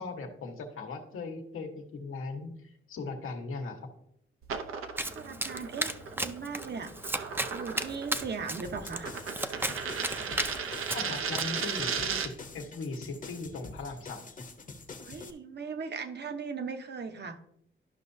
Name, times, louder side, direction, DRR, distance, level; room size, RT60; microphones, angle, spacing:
voice 1, 0.0-3.8 10.9-14.3, left 3 dB, 85° left, 3 dB, 1.3 m, -39 dB
sound 1, 4.4-12.5, right 6 dB, 85° right, 0.8 m, -36 dB
Domestic sounds home sounds, 5.0-11.4, right 1 dB, 10° right, 0.5 m, -35 dB
voice 2, 5.1-6.9 7.5-9.1 15.0-17.4, right 5 dB, 55° right, 7 dB, 1.0 m, -38 dB
sound 2, 8.6-15.3, left 3 dB, 40° left, 0.9 m, -46 dB
12.0 x 5.6 x 2.7 m, 0.70 s
cardioid pair, 95°, 21 cm